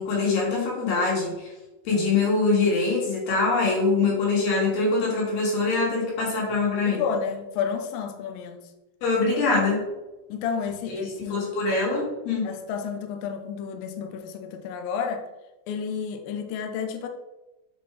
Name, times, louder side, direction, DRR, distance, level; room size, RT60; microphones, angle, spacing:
voice 1, 0.0-1.5 1.9-7.0 9.0-9.8 10.9-11.0 11.3-12.5, left 3 dB, 65° left, -4 dB, 4.1 m, -23 dB
voice 2, 6.8-8.7 10.3-11.5 12.4-15.3 15.7-17.1, left 6 dB, 90° left, 5 dB, 2.0 m, -31 dB
7.4 x 4.3 x 4.8 m, 1.1 s
omnidirectional pair, 5.1 m